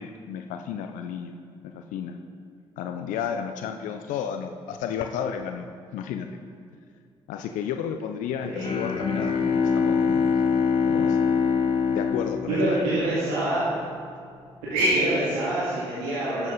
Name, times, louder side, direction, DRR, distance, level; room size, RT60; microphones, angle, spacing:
voice 1, 0.0-1.4 1.7-2.2 2.8-5.7 5.9-6.3 7.3-10.3 10.9-11.2 11.9-12.8, left 8 dB, 70° left, 6 dB, 0.5 m, -32 dB
Bowed string instrument, 8.5-13.4, left 6 dB, 45° left, 1.1 m, -24 dB
voice 2, 12.5-13.7 14.7-16.5, right 1 dB, 80° right, -9 dB, 2.0 m, -25 dB
12.5 x 8.0 x 3.8 m, 2.2 s
hypercardioid pair, 45°, 14 cm